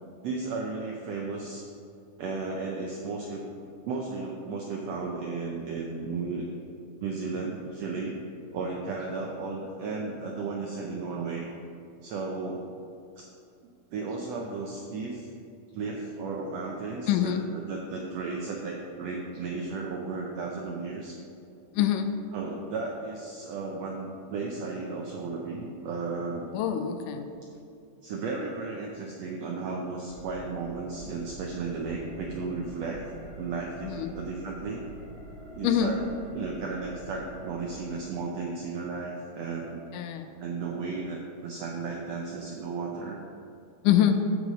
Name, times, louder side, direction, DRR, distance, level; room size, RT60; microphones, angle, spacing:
voice 1, 0.2-1.7 2.2-3.4 3.9-6.5 7.0-8.2 8.5-11.5 12.0-12.6 13.2-13.3 13.9-15.3 15.7-21.1 22.3-26.5 28.0-33.0 33.3-34.8 35.6-36.0 36.3-39.8 40.4-43.2, right 4 dB, 80° right, 0 dB, 1.5 m, -34 dB
voice 2, 17.1-17.4 21.7-22.1 26.5-27.3 33.8-34.1 35.6-36.0 39.9-40.3 43.8-44.2, left 10 dB, 80° left, 8 dB, 2.0 m, -25 dB
sound 1, 30.1-37.9, right 1 dB, 40° left, 2.7 m, -46 dB
13.5 x 4.9 x 5.2 m, 2.5 s
omnidirectional pair, 3.8 m